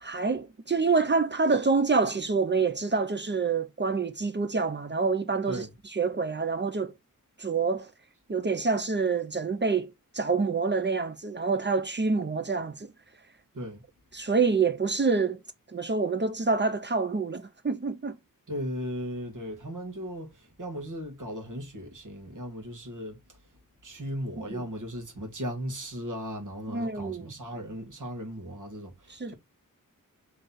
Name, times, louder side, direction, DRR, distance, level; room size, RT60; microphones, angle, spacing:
voice 1, 0.0-5.6 5.9-6.9 7.4-7.9 8.3-12.9 14.1-15.4 15.7-18.2 24.5-24.6 26.7-27.3 29.2-29.3, right 4 dB, 30° right, 0.6 m, -27 dB
voice 2, 18.5-23.4 23.8-29.3, equal, 60° right, 1.6 m, -37 dB
3.8 x 3.3 x 4.1 m
wide cardioid pair, 95°, 35 cm